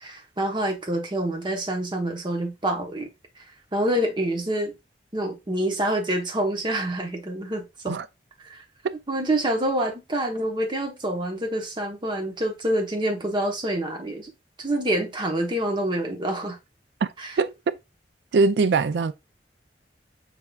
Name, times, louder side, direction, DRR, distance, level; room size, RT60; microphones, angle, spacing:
voice 1, 0.0-3.1 3.4-3.5 3.7-4.7 5.1-8.0 8.4-8.6 9.1-14.3 14.6-16.6 17.2-17.4, right 1 dB, 25° right, 0.9 m, -27 dB
voice 2, 18.3-19.1, right 4 dB, 70° right, 0.4 m, -21 dB
5.5 x 3.4 x 2.3 m
head